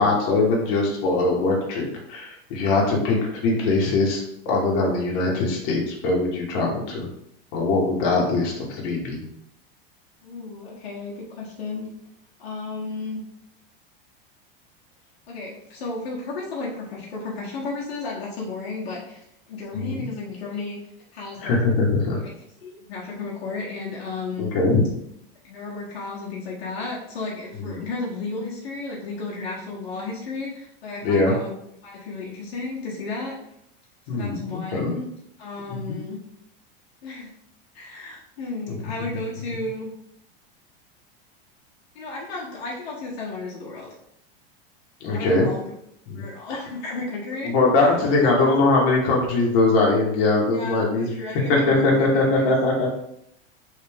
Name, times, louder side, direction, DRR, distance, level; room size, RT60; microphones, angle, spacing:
voice 1, 0.0-7.1 7.5-9.2 19.7-20.0 21.4-22.2 24.4-24.8 27.6-27.8 31.0-31.3 34.1-34.9 35.7-36.0 38.7-38.8 45.0-45.5 46.1-46.2 46.5-46.6 47.4-51.1 51.5-52.9, left 3 dB, 65° left, -1 dB, 1.6 m, -21 dB
voice 2, 10.2-11.9 12.4-13.2 15.3-19.2 19.5-20.8 21.1-21.6 22.6-24.5 25.4-31.5 31.8-33.3 34.1-35.1 35.4-36.2 37.0-37.3 37.7-39.9 41.9-43.9 45.1-45.6 46.1-48.5 50.5-52.5, left 3 dB, 85° left, -5 dB, 1.5 m, -33 dB
3.9 x 3.5 x 3.5 m, 0.76 s
supercardioid pair, 125°, 30 cm